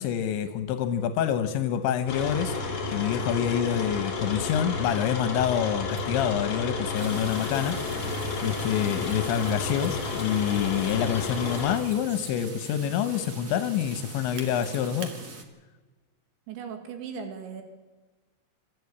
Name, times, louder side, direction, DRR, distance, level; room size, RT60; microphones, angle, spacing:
voice 1, 0.0-2.5 2.9-7.8 8.1-15.1, left 9 dB, 85° left, 9 dB, 3.3 m, -27 dB
sound 1, 2.1-11.8, left 4 dB, 40° left, 3.7 m, -31 dB
Mechanisms, 6.0-6.1 7.0-8.5 9.0-12.6 14.4-15.1, right 5 dB, 45° right, 2.6 m, -46 dB
sound 2, 6.9-15.4, right 3 dB, 70° right, 0.9 m, -42 dB
voice 2, 16.5-17.6, right 6 dB, 85° right, 6 dB, 4.3 m, -37 dB
26.0 x 14.0 x 8.3 m, 1.3 s
omnidirectional pair, 5.1 m